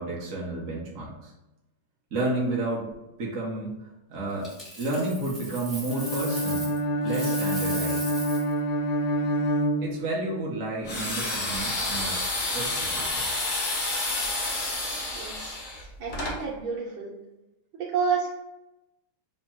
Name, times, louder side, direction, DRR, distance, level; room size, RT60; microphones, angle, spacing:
voice 1, 0.0-1.3 2.1-2.9 3.2-3.8 4.1-4.5 4.8-6.7 7.0-8.1 9.8-12.2 12.4-13.3, right 2 dB, 55° right, -4 dB, 0.9 m, -31 dB
Coin (dropping), 4.4-6.8 7.1-8.5 11.3-11.6, equal, ahead, 0.4 m, -38 dB
Bowed string instrument, 5.9-10.5, equal, 75° left, 0.9 m, -27 dB
sound 1, 10.8-16.4, left 2 dB, 45° left, 0.6 m, -29 dB
voice 2, 15.1-15.6 16.0-17.1 17.7-18.3, right 5 dB, 85° right, -6 dB, 1.5 m, -29 dB
3.5 x 2.1 x 4.3 m, 0.96 s
omnidirectional pair, 2.2 m